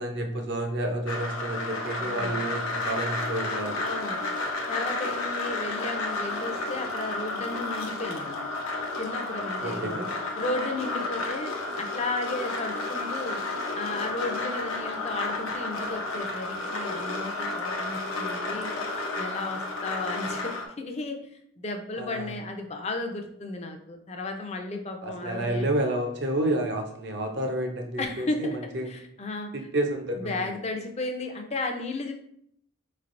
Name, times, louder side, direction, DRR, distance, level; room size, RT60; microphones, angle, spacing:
voice 1, 0.0-3.8 9.6-10.1 22.0-22.3 25.0-28.5 28.7-28.9 29.5-30.5, right 1 dB, 55° right, 4 dB, 0.6 m, -30 dB
sound 1, 1.1-20.6, left 2 dB, 85° left, 0.7 m, -32 dB
voice 2, 2.0-2.4 3.8-4.2 4.7-8.5 9.0-10.0 10.4-13.4 13.7-18.7 19.1-21.2 21.6-25.7 28.0-28.6 28.9-29.5 30.2-32.1, left 2 dB, 30° left, 4 dB, 0.5 m, -34 dB
5.0 x 3.2 x 2.5 m, 0.71 s
head